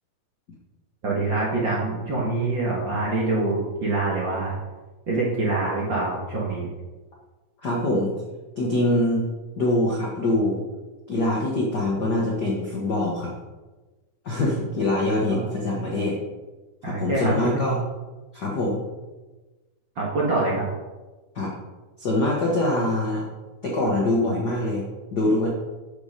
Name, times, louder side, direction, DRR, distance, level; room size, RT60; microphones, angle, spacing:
voice 1, 1.0-4.6 5.1-6.7 15.3-15.5 16.8-17.5 20.0-20.7, right 2 dB, 45° right, -4 dB, 1.7 m, -25 dB
voice 2, 7.6-8.1 8.6-9.3 9.6-10.6 11.1-13.3 14.2-16.2 16.8-17.8 18.3-18.8 21.3-21.5 22.0-23.2 23.6-25.5, left 1 dB, 65° left, -2 dB, 1.0 m, -24 dB
9.3 x 7.1 x 5.2 m, 1.2 s
omnidirectional pair, 4.2 m